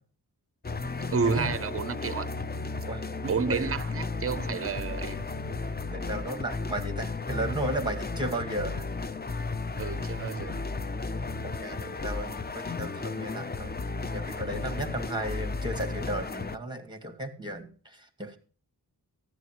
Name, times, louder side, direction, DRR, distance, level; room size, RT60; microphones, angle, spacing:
sound 1, 0.6-16.6, left 3 dB, 25° left, 0.5 m, -34 dB
voice 1, 1.1-2.3 3.2-5.3 9.8-10.6, right 5 dB, 35° right, 0.6 m, -30 dB
voice 2, 5.9-8.9 11.4-13.7 14.1-18.4, right 1 dB, 10° right, 2.1 m, -34 dB
14.5 x 10.0 x 2.9 m
wide cardioid pair, 95°, 39 cm